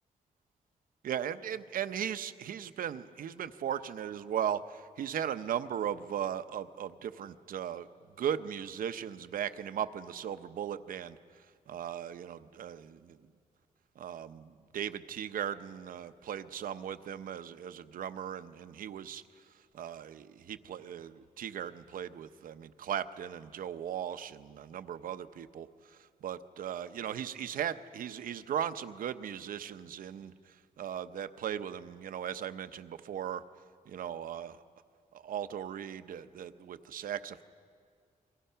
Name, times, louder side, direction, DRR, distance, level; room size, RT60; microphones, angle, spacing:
voice 1, 1.0-7.9 8.2-11.2 11.7-13.2 14.0-19.2 19.7-25.7 26.2-30.3 30.8-33.4 33.9-34.6 35.1-37.4, right 9 dB, 80° right, 11 dB, 0.8 m, -37 dB
29.0 x 24.0 x 5.7 m, 2.1 s
wide cardioid pair, 165°, 14 cm